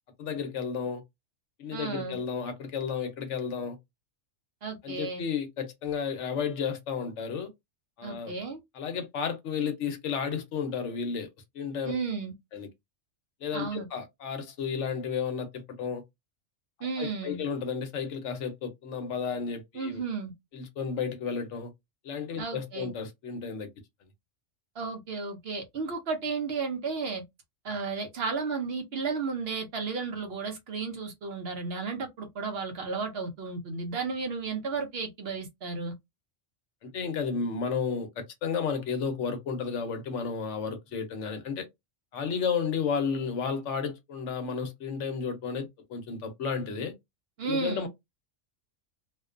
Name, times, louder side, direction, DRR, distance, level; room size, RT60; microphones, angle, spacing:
voice 1, 0.2-1.0 1.6-3.8 4.8-7.5 8.0-8.3 8.7-11.3 11.5-11.9 12.5-12.7 13.4-16.0 17.0-20.0 20.5-21.7 22.0-23.7 36.8-41.7 42.1-46.9 47.4-47.9, left 6 dB, 70° left, 0.9 m, -32 dB
voice 2, 1.7-2.2 4.6-5.2 8.0-8.6 11.8-12.3 13.5-13.9 16.8-17.4 19.7-20.3 22.4-22.9 24.8-27.2 27.6-35.9 47.4-47.9, right 4 dB, 60° right, 0.7 m, -33 dB
2.4 x 2.2 x 2.4 m
omnidirectional pair, 1.3 m